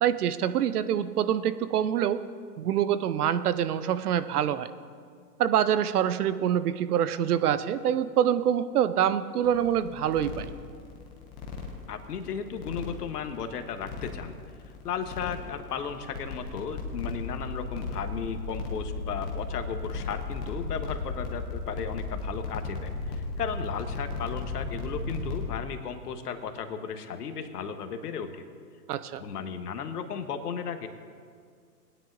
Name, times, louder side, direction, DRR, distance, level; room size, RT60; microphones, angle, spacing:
voice 1, 0.0-2.2 2.6-4.7 5.4-10.5 28.9-29.2, right 10 dB, 65° right, 13 dB, 0.7 m, -25 dB
sound 1, 9.4-25.5, left 3 dB, 10° left, 0.4 m, -35 dB
voice 2, 11.9-14.4 14.8-28.4 29.2-30.9, left 7 dB, 70° left, 8 dB, 1.2 m, -35 dB
19.5 x 9.8 x 2.6 m, 2.1 s
hypercardioid pair, 130°, 49 cm